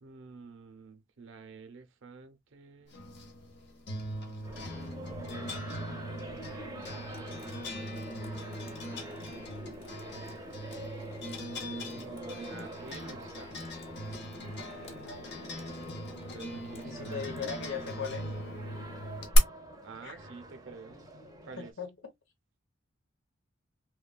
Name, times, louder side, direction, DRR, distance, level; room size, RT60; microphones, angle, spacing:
voice 1, 0.0-3.0 11.8-13.6 16.1-17.3 19.8-21.0 21.4-21.7, right 4 dB, 70° right, 0.6 m, -49 dB
sound 1, 2.9-19.4, left 1 dB, 60° left, 0.9 m, -40 dB
sound 2, 4.4-21.7, right 1 dB, 20° right, 0.6 m, -46 dB
Water tap faucet / Sink (filling or washing) / Drip, 7.1-17.9, equal, 30° left, 0.8 m, -51 dB
voice 2, 14.8-15.3 16.8-18.3 20.0-20.2 21.6-22.1, left 6 dB, 80° left, 1.1 m, -39 dB
3.1 x 2.2 x 2.2 m
head